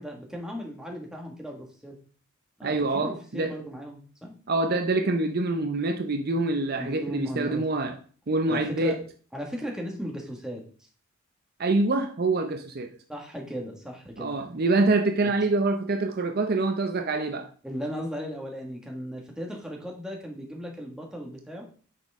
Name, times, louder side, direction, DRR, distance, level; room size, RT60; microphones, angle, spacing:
voice 1, 0.0-2.0 2.6-4.3 6.8-7.6 8.5-9.0 9.3-10.6 13.1-14.3 15.2-15.3 17.6-21.6, equal, 5° right, 1.8 m, -36 dB
voice 2, 2.6-3.5 4.5-8.0 8.3-9.0 11.6-13.0 14.2-17.5, right 2 dB, 45° right, 0.6 m, -25 dB
9.2 x 6.1 x 3.6 m
head